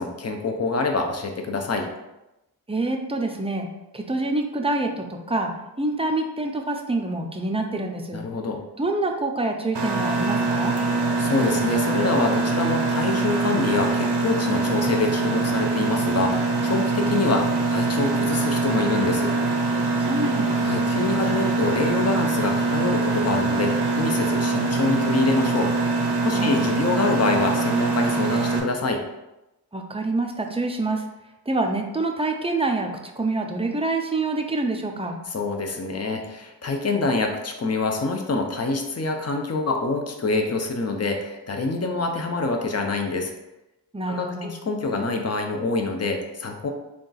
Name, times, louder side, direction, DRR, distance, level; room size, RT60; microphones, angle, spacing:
voice 1, 0.0-1.9 8.1-8.6 11.2-19.3 20.6-25.7 26.2-29.0 35.3-43.3 44.1-46.7, left 3 dB, 40° left, 3 dB, 0.5 m, -26 dB
voice 2, 2.7-3.7 3.9-8.2 8.8-10.7 20.0-20.5 26.3-26.6 29.7-31.0 31.5-35.2 43.9-44.5, right 2 dB, 15° right, 3 dB, 0.4 m, -26 dB
Mechanisms, 9.7-28.6, right 3 dB, 70° right, 0.6 m, -23 dB
3.6 x 2.3 x 3.9 m, 0.95 s
wide cardioid pair, 60°, 42 cm